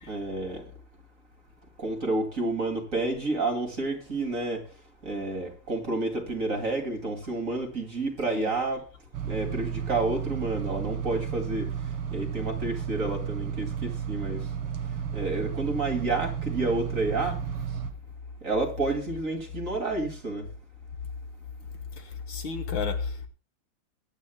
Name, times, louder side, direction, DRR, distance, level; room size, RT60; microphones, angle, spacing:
voice 1, 0.1-0.6 1.8-4.6 5.0-8.8 9.3-11.7 12.1-14.4 15.1-17.4 18.4-20.5, right 2 dB, 35° right, 2.8 m, -30 dB
sound 1, 9.1-17.9, right 8 dB, 85° right, 2.4 m, -33 dB
voice 2, 22.0-23.3, left 5 dB, 65° left, 1.8 m, -32 dB
22.5 x 9.2 x 2.2 m
omnidirectional pair, 2.4 m